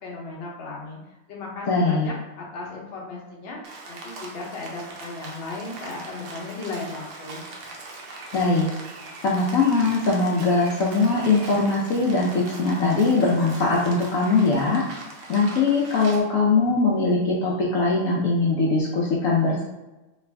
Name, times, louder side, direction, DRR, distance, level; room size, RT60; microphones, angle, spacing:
voice 1, 0.0-1.0 1.3-7.5, left 3 dB, 50° left, -2 dB, 1.0 m, -36 dB
voice 2, 1.7-2.1 8.3-8.7 9.2-14.8 15.3-19.6, left 3 dB, 70° left, -4 dB, 1.0 m, -21 dB
Rain, 3.6-16.2, right 3 dB, 75° right, 1.1 m, -41 dB
3.2 x 2.4 x 3.2 m, 1.0 s
omnidirectional pair, 1.6 m